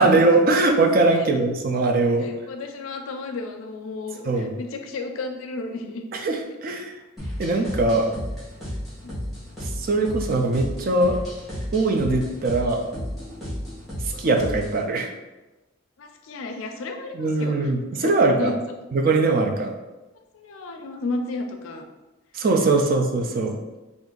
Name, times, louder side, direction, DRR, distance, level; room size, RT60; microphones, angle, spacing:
voice 1, 0.0-2.3 4.3-4.5 6.1-6.9 7.4-8.1 9.6-11.2 11.7-12.9 14.2-15.1 17.1-18.5 18.9-19.7 22.3-23.5, right 2 dB, 45° right, 3 dB, 0.3 m, -21 dB
voice 2, 2.2-6.0 9.0-9.6 16.0-17.7 18.0-18.6 20.3-21.8 22.7-22.8, left 3 dB, 75° left, 5 dB, 0.4 m, -33 dB
sound 1, 7.2-14.8, equal, ahead, 1.0 m, -33 dB
2.5 x 2.5 x 3.7 m, 1.1 s
head